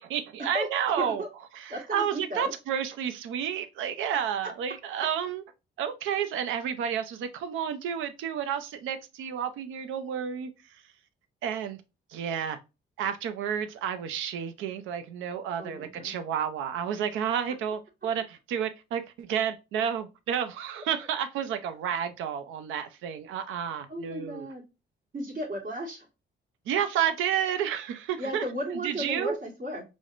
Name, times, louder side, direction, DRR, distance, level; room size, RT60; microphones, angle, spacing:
voice 1, 0.1-1.2 1.5-5.4 5.8-10.5 11.4-11.8 12.1-12.6 13.0-24.5 26.7-28.5 28.8-29.4, right 8 dB, 85° right, 0.5 m, -31 dB
voice 2, 1.0-1.3 1.7-2.5 15.6-16.1 23.9-24.6 25.1-26.1 28.2-29.8, equal, 45° right, 1.4 m, -34 dB
4.7 x 2.0 x 2.4 m
cardioid pair, 90°, 20 cm